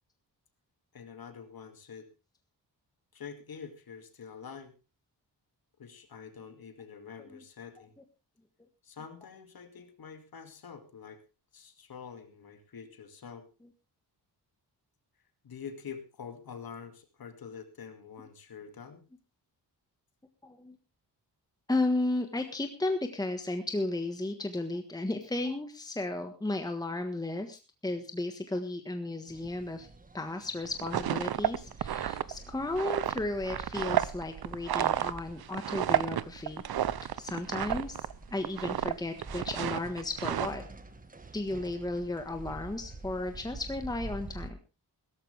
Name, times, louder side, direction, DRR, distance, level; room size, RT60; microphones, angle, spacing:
voice 1, 0.9-2.1 3.1-4.8 5.8-7.9 8.8-11.2 11.5-13.5 15.4-19.0, left 6 dB, 60° left, 8 dB, 2.5 m, -46 dB
voice 2, 20.4-20.8 21.7-29.9 30.1-36.6 37.2-40.6 41.3-44.6, left 2 dB, 10° left, 6 dB, 1.5 m, -34 dB
sound 1, 29.3-44.5, right 2 dB, 20° right, 1.5 m, -48 dB
sound 2, 30.6-38.1 38.4-38.9 39.2-40.5, right 10 dB, 65° right, 0.8 m, -31 dB
17.0 x 14.0 x 3.5 m, 0.30 s
wide cardioid pair, 155°, 40 cm